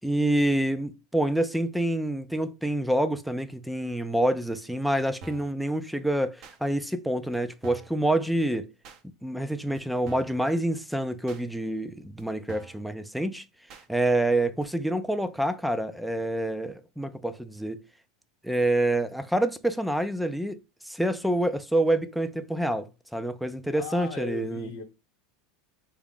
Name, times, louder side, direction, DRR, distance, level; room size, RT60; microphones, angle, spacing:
voice 1, 0.0-8.7 9.0-13.4 13.9-17.8 18.4-20.6 20.8-24.7, right 1 dB, ahead, 0.3 m, -27 dB
sound 1, 5.2-5.6 6.4-6.6 7.3-7.4 7.6-8.0 8.8-9.0 9.8-9.9 10.1-10.4 11.3-11.4 12.2-12.3 12.5-12.8 13.7-13.9 14.6-14.7, right 3 dB, 50° right, 0.7 m, -45 dB
voice 2, 23.7-24.8, left 9 dB, 70° left, 0.9 m, -38 dB
3.6 x 2.3 x 3.5 m
supercardioid pair, 140°, 0 cm